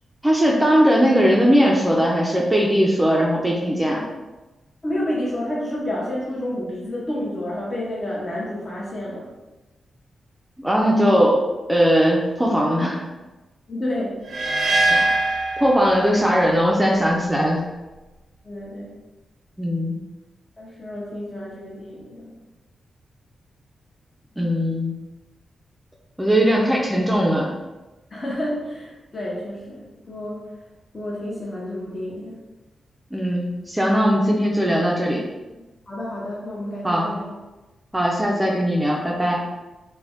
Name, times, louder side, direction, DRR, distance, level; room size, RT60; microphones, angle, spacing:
voice 1, 0.2-4.0 10.6-11.4 11.7-13.0 14.9-15.2 15.6-17.6 19.6-20.0 24.4-24.9 26.2-27.5 33.1-35.2 36.8-37.1 37.9-39.4, equal, 10° right, -2 dB, 0.4 m, -19 dB
voice 2, 4.8-9.3 13.7-14.2 18.4-18.9 20.6-22.3 28.1-30.4 30.9-32.4 35.9-37.3, left 1 dB, 35° left, -6 dB, 0.7 m, -30 dB
sound 1, 14.3-16.4, right 2 dB, 85° right, 0.5 m, -22 dB
2.4 x 2.1 x 3.4 m, 1.1 s
cardioid pair, 70°, 0 cm